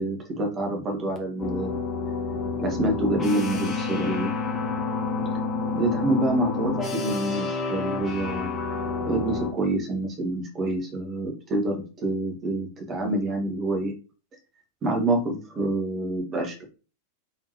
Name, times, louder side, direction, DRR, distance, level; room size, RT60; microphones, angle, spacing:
voice 1, 0.0-1.7 2.6-4.3 5.7-8.5 9.1-13.9 14.8-16.6, right 2 dB, 25° right, 2 dB, 1.7 m, -27 dB
sound 1, 1.4-9.5, left 4 dB, 20° left, 1.3 m, -29 dB
4.1 x 3.7 x 3.0 m, 0.34 s
figure-of-eight pair, 90°, 0 cm